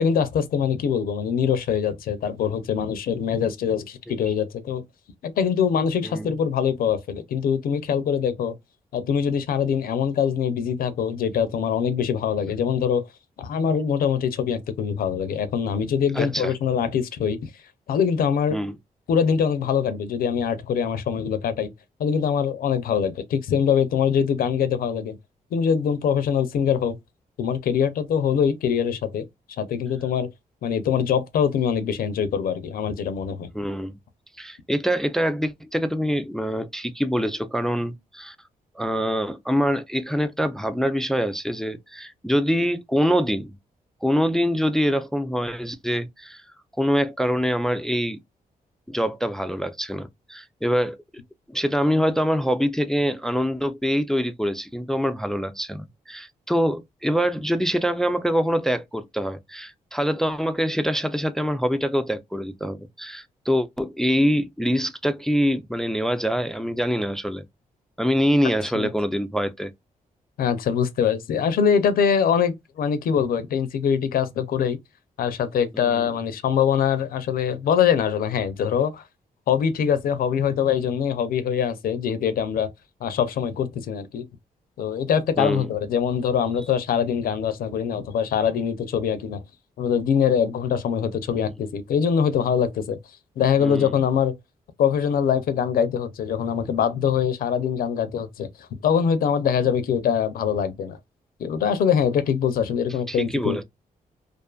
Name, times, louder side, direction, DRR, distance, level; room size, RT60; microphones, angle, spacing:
voice 1, 0.0-4.8 5.2-8.5 8.9-13.0 13.4-17.5 17.9-18.6 19.1-21.7 22.0-25.2 25.5-27.0 27.4-29.2 29.6-30.3 30.6-33.5 68.7-68.9 70.4-74.8 75.2-79.0 79.5-82.7 83.0-84.2 84.8-89.4 89.8-93.0 93.4-94.3 94.8-101.0 101.4-103.6, left 7 dB, 80° left, 0.5 m, -23 dB
voice 2, 16.1-16.5 18.5-18.8 33.5-33.9 34.4-38.4 38.8-43.5 44.0-46.4 46.8-48.2 48.9-51.0 51.5-67.4 68.0-69.7 75.8-76.1 85.4-85.7 91.4-91.5 93.6-94.0 103.1-103.6, equal, 5° left, 0.3 m, -24 dB
2.5 x 2.4 x 2.2 m
cardioid pair, 75°, 15 cm